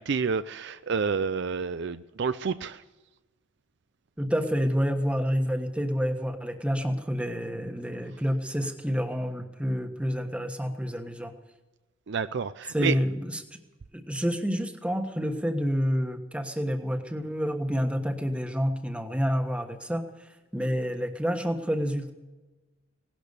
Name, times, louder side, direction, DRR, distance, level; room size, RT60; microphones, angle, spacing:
voice 1, 0.0-2.8 12.1-12.9, right 5 dB, 60° right, 13 dB, 0.5 m, -29 dB
voice 2, 4.2-11.3 12.7-13.4 13.9-20.0 20.5-22.1, equal, 5° right, 5 dB, 1.3 m, -28 dB
18.0 x 12.0 x 6.8 m, 1.2 s
head